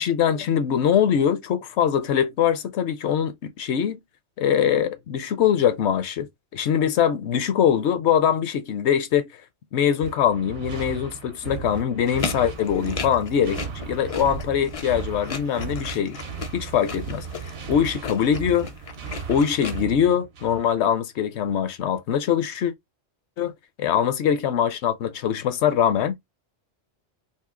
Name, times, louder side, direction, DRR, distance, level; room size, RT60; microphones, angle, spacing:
voice 1, 0.0-4.0 4.4-9.3 9.7-16.2 16.5-18.7 19.3-22.7 23.4-23.5 23.8-26.1, left 8 dB, 75° left, 0.9 m, -23 dB
sound 1, 10.0-20.8, right 7 dB, 65° right, 0.9 m, -36 dB
sound 2, 12.0-19.8, left 5 dB, 45° left, 0.4 m, -36 dB
2.8 x 2.6 x 3.6 m
omnidirectional pair, 1.2 m